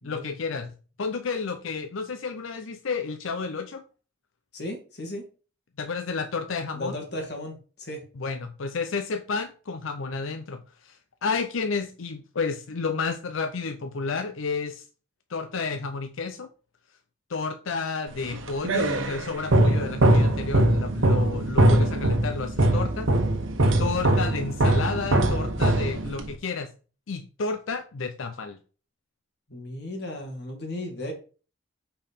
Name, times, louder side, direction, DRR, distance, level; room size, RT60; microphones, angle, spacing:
voice 1, 0.0-3.8 5.8-6.9 8.2-14.8 15.3-16.5 17.3-23.1 23.8-26.7 27.1-28.6, left 4 dB, 90° left, 8 dB, 0.6 m, -31 dB
voice 2, 4.5-5.2 6.7-8.0 29.5-31.1, left 1 dB, 55° left, 2 dB, 2.1 m, -35 dB
sound 1, 18.2-26.4, right 1 dB, 90° right, 1.1 m, -22 dB
5.4 x 4.4 x 5.5 m, 0.37 s
head